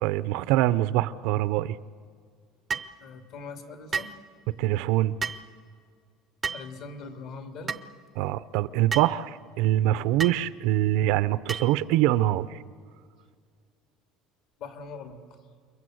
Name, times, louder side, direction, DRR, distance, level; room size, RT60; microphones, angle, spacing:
voice 1, 0.0-1.8 4.6-5.2 8.2-12.6, right 14 dB, 70° right, 15 dB, 0.6 m, -24 dB
sound 1, 2.7-2.9 3.9-4.2 5.2-5.5 6.4-6.7 7.7-7.9 8.9-9.1 10.2-10.4 11.5-11.8, right 6 dB, 20° right, 0.6 m, -31 dB
voice 2, 3.0-4.1 6.5-7.8 14.6-15.2, left 4 dB, 50° left, 5 dB, 2.6 m, -41 dB
29.0 x 23.0 x 7.9 m, 2.1 s
cardioid pair, 165°, 0 cm